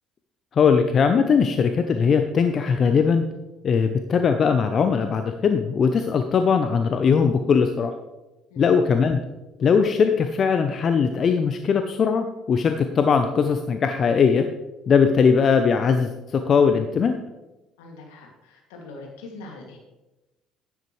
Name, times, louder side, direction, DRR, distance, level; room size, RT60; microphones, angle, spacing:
voice 1, 0.5-3.3 3.6-7.9 8.6-9.2 9.6-14.4 14.9-17.1, left 6 dB, 45° left, 7 dB, 0.7 m, -20 dB
voice 2, 17.8-19.8, left 2 dB, 75° left, 0 dB, 2.5 m, -42 dB
10.5 x 10.0 x 3.3 m, 1.0 s
hypercardioid pair, 60°, 0 cm